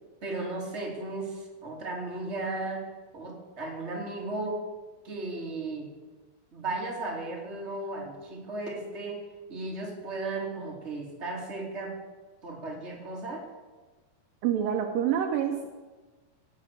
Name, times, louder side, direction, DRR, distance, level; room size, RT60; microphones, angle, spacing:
voice 1, 0.2-2.8 3.1-4.6 5.0-5.9 6.5-11.9 12.4-13.4, right 2 dB, 20° right, -2 dB, 2.9 m, -35 dB
voice 2, 14.4-15.7, right 9 dB, 75° right, 4 dB, 2.5 m, -27 dB
17.5 x 8.5 x 6.8 m, 1.3 s
omnidirectional pair, 4.3 m